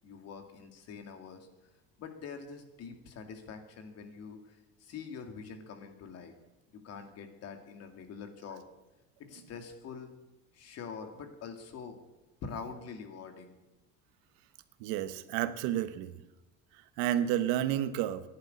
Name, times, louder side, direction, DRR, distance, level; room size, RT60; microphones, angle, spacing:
voice 1, 0.0-1.5 2.0-6.3 6.8-8.6 9.2-10.1 10.5-12.0 12.4-13.5, left 5 dB, 50° left, 6 dB, 2.5 m, -45 dB
voice 2, 14.8-16.1 17.0-18.2, right 11 dB, 80° right, 11 dB, 1.2 m, -30 dB
11.5 x 11.0 x 9.7 m, 1.1 s
cardioid pair, 125°, 33 cm